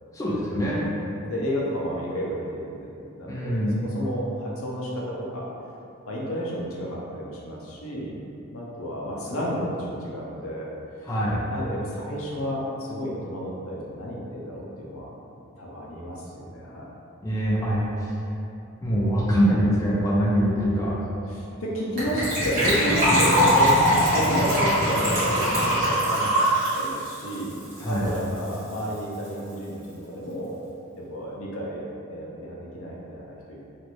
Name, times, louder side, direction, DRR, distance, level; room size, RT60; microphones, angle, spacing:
voice 1, 0.1-0.9 3.3-3.8 11.0-11.4 17.2-18.1 18.8-20.9 27.8-28.1, equal, 15° left, -7 dB, 0.4 m, -23 dB
voice 2, 1.2-5.4 6.1-8.2 8.5-11.2 11.5-15.1 15.6-16.9 21.3-23.8 24.1-26.4 26.8-27.6 27.8-30.6 30.9-31.8 32.1-33.6, equal, 70° left, -4 dB, 0.6 m, -31 dB
Gurgling / Trickle dribble / Fill (with liquid), 22.0-28.2 28.5-28.6 28.7-29.0 29.3-29.4, equal, 45° right, 1.4 m, -22 dB
3.1 x 2.5 x 3.0 m, 2.7 s
head